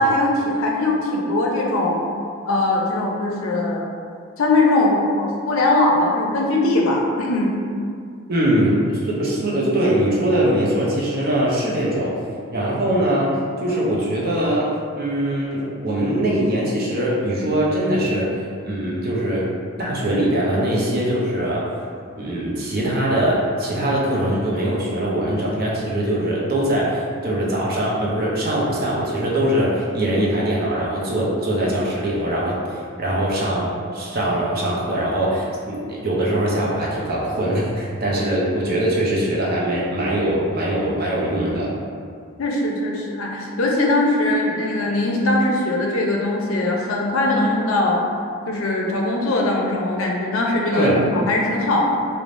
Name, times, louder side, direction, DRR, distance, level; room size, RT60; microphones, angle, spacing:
voice 1, 0.0-2.0 2.5-3.9 4.4-7.6 42.4-48.0 48.5-51.8, left 2 dB, 80° left, -1 dB, 0.5 m, -20 dB
voice 2, 8.3-12.2 12.5-18.3 18.6-19.5 19.8-21.7 22.2-32.6 33.0-41.7 50.7-51.0, right 1 dB, 45° right, -5 dB, 0.5 m, -22 dB
3.2 x 2.0 x 2.5 m, 2.3 s
head